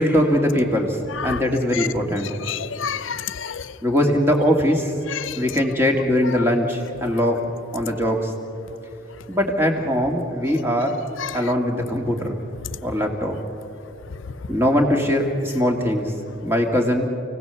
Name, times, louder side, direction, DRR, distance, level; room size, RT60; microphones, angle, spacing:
voice 1, 0.0-2.3 3.8-4.9 5.3-7.4 7.7-8.3 9.3-11.0 11.3-12.4 12.8-13.4 14.5-16.1 16.4-17.1, equal, 10° right, 2 dB, 2.1 m, -21 dB
voice 2, 1.1-1.4 1.7-1.9 2.4-3.7 5.1-5.4 6.3-6.4 11.2-11.5, left 8 dB, 85° left, 15 dB, 0.7 m, -29 dB
29.0 x 17.5 x 7.0 m, 2.8 s
head